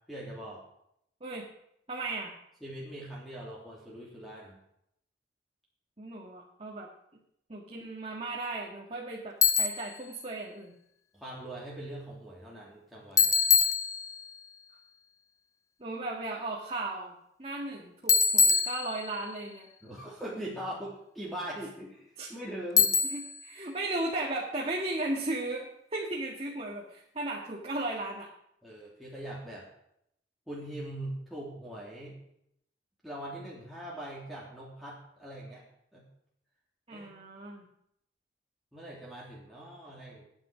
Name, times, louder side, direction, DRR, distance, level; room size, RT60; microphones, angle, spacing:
voice 1, 0.1-0.6 2.6-4.6 11.1-13.4 19.8-22.9 28.6-29.7 30.5-32.2 33.0-35.6 35.9-36.0 36.9-37.1 38.7-40.2, right 1 dB, ahead, -6 dB, 3.0 m, -41 dB
voice 2, 1.9-2.3 6.0-6.9 7.5-10.7 15.8-19.7 22.2-22.3 23.1-28.3 36.9-37.7, right 2 dB, 35° right, -2 dB, 1.9 m, -36 dB
Bicycle, 9.4-9.9 13.2-14.4 18.1-19.3 22.8-23.4, left 5 dB, 15° left, 0.7 m, -24 dB
19.5 x 9.2 x 5.1 m, 0.76 s
head